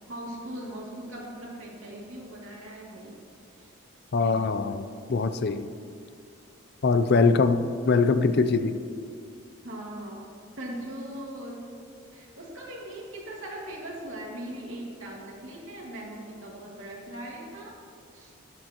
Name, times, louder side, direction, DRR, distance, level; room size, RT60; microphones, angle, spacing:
voice 1, 0.0-3.2 3.5-3.7 9.6-10.2 10.6-11.7 12.1-17.8 18.1-18.3, right 1 dB, 70° right, -3 dB, 2.5 m, -40 dB
voice 2, 4.1-5.7 6.8-8.8, left 4 dB, 50° left, 10 dB, 0.4 m, -23 dB
14.0 x 10.5 x 3.0 m, 2.3 s
head